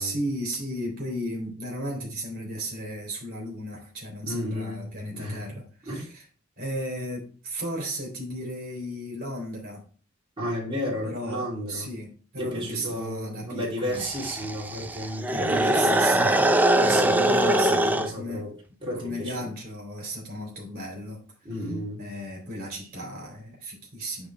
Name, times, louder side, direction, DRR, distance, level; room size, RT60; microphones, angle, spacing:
voice 1, 0.0-6.2 6.6-9.8 11.0-14.0 15.3-18.4 19.0-21.2 21.5-21.6 22.0-24.3, equal, 45° right, 2.8 m, -35 dB
voice 2, 4.2-5.6 5.8-6.1 10.4-11.9 12.4-16.3 16.8-18.5 18.8-19.5 21.4-22.1, equal, 25° right, 3.0 m, -32 dB
sound 1, 13.9-18.1, right 1 dB, 10° right, 0.4 m, -22 dB
9.1 x 3.6 x 4.5 m
head